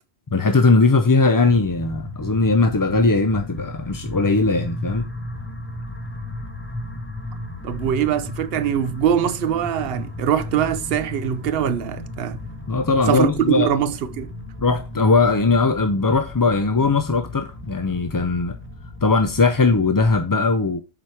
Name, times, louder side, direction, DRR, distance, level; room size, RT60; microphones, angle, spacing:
voice 1, 0.3-5.1 12.7-13.7 14.6-18.6 19.0-20.8, left 3 dB, 30° left, 0.4 m, -19 dB
sound 1, 1.4-20.2, left 1 dB, 10° left, 1.3 m, -35 dB
voice 2, 7.6-12.4 13.1-14.3, right 9 dB, 70° right, 0.8 m, -22 dB
7.5 x 4.5 x 4.8 m
omnidirectional pair, 1.1 m